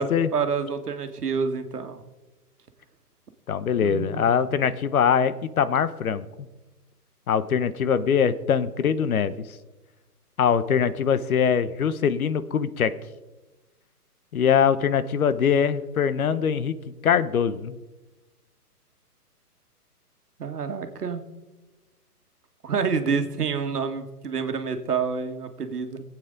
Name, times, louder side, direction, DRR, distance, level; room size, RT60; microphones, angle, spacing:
voice 1, 0.3-2.0 3.8-4.3 20.4-21.2 22.6-26.0, right 5 dB, 75° right, 7 dB, 1.7 m, -28 dB
voice 2, 3.5-6.3 7.3-9.5 10.4-12.9 14.3-16.8 17.0-17.8, left 7 dB, 65° left, 15 dB, 1.0 m, -22 dB
19.5 x 8.6 x 3.9 m, 1.1 s
hypercardioid pair, 135°, 47 cm